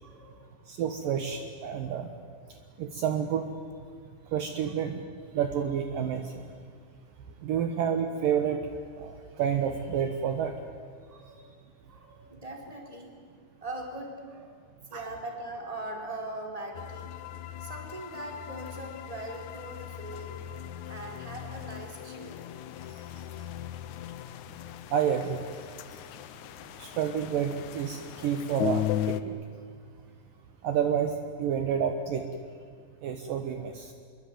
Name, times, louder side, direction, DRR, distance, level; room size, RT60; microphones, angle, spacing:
voice 1, 0.0-0.6 4.6-4.7 7.5-7.7 11.1-11.4 11.9-13.2 13.6-14.5 14.9-17.1 17.6-20.5 20.9-22.4, right 1 dB, 10° right, 1 dB, 3.8 m, -41 dB
voice 2, 0.7-2.1 2.8-3.5 4.3-5.0 5.3-6.5 7.4-8.6 9.0-10.5 24.9-25.4 26.8-29.2 30.6-32.2 33.0-33.9, right 8 dB, 65° right, 6 dB, 2.7 m, -29 dB
sound 1, 16.7-29.2, left 11 dB, 75° left, 1.7 m, -37 dB
26.5 x 23.0 x 9.3 m, 2.1 s
omnidirectional pair, 4.6 m